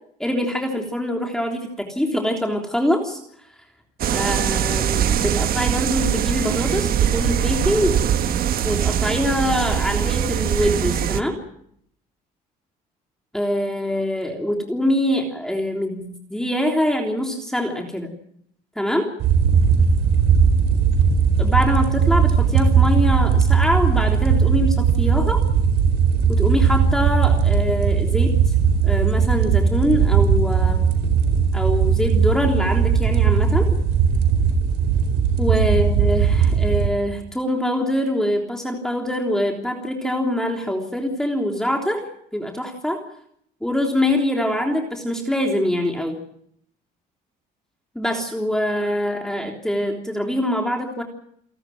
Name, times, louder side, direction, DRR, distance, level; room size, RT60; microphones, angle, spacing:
voice 1, 0.2-3.2 4.1-8.0 8.6-11.4 13.3-18.2 18.8-19.1 21.4-25.4 26.3-28.5 28.8-30.9 31.5-33.8 35.4-43.0 43.6-46.2 48.0-51.0, left 1 dB, 5° left, 2 dB, 3.5 m, -24 dB
sound 1, 4.0-11.2, right 9 dB, 60° right, 1.4 m, -22 dB
sound 2, 19.2-36.9, right 6 dB, 80° right, 4.3 m, -18 dB
29.5 x 13.0 x 9.3 m, 0.72 s
cardioid pair, 110°, 17 cm